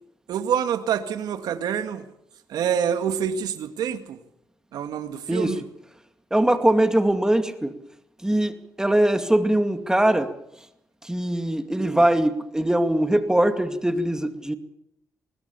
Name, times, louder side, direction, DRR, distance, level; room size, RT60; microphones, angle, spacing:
voice 1, 0.3-2.1 2.5-4.2 4.7-5.6 11.8-12.0, right 8 dB, 80° right, 8 dB, 2.1 m, -27 dB
voice 2, 6.3-7.7 8.2-10.3 11.0-14.5, right 1 dB, 10° right, 8 dB, 2.3 m, -21 dB
22.0 x 20.0 x 7.1 m, 0.81 s
cardioid pair, 80°, 7 cm